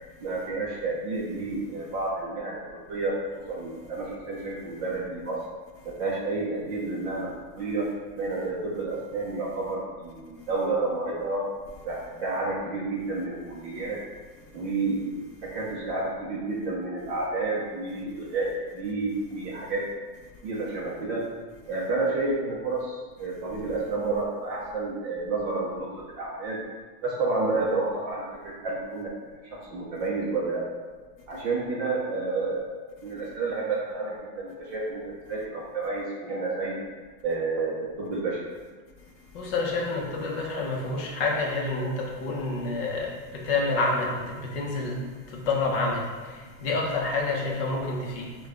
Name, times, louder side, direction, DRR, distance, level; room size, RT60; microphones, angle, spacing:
voice 1, 0.2-3.2 3.5-5.4 5.8-7.3 7.6-7.9 8.2-11.5 11.8-14.0 14.5-19.9 20.4-21.3 21.7-26.6 27.0-29.1 29.5-30.6 31.3-32.7 33.0-36.8 37.2-38.4, right 3 dB, 25° right, 0.5 m, -30 dB
voice 2, 39.3-45.0 45.3-48.4, left 3 dB, 35° left, 0.7 m, -28 dB
6.3 x 2.3 x 3.5 m
supercardioid pair, 145°, 48 cm